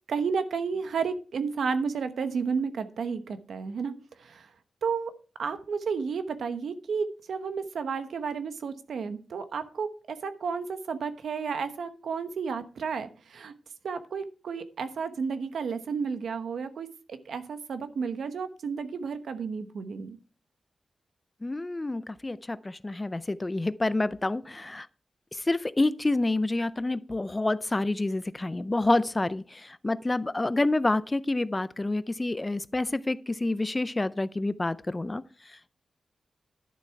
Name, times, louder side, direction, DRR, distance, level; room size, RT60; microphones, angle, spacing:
voice 1, 0.1-4.5 4.8-5.1 5.4-13.5 13.8-20.2, right 5 dB, 90° right, 1.0 m, -32 dB
voice 2, 21.4-24.9 25.5-35.2, left 2 dB, 20° left, 0.4 m, -28 dB
11.5 x 7.1 x 4.5 m
wide cardioid pair, 125°, 0 cm